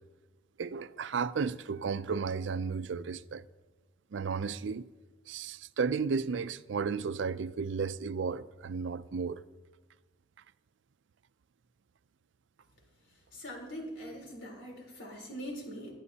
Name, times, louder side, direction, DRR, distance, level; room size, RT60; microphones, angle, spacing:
voice 1, 0.6-3.4 4.1-4.9 5.3-9.4, right 5 dB, 75° right, 0.4 m, -33 dB
voice 2, 13.3-15.9, equal, 85° left, 3.8 m, -42 dB
20.5 x 11.0 x 2.8 m
head